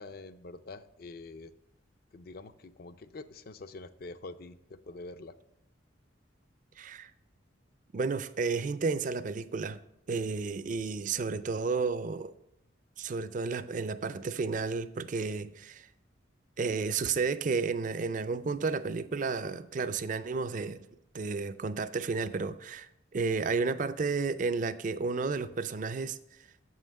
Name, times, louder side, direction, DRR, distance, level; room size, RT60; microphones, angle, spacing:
voice 1, 0.0-1.5 2.1-5.4, left 3 dB, 50° left, 0.4 m, -46 dB
voice 2, 6.8-7.1 7.9-9.8 10.1-12.3 13.0-15.9 16.6-20.9 21.1-26.2, right 4 dB, 40° right, 0.4 m, -32 dB
7.5 x 5.6 x 6.3 m
head